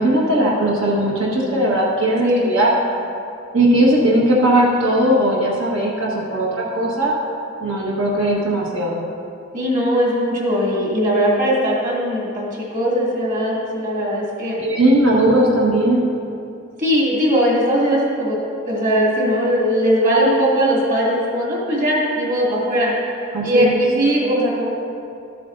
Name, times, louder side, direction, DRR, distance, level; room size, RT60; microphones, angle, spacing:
voice 1, 0.0-2.7 3.5-7.1 7.6-9.0 14.6-16.1 23.3-23.8, right 1 dB, 90° right, -5 dB, 1.4 m, -18 dB
voice 2, 2.2-2.5 9.5-14.6 16.8-18.4 18.6-22.9 23.4-24.7, equal, 45° right, -5 dB, 2.3 m, -19 dB
13.0 x 8.4 x 2.6 m, 2.5 s
head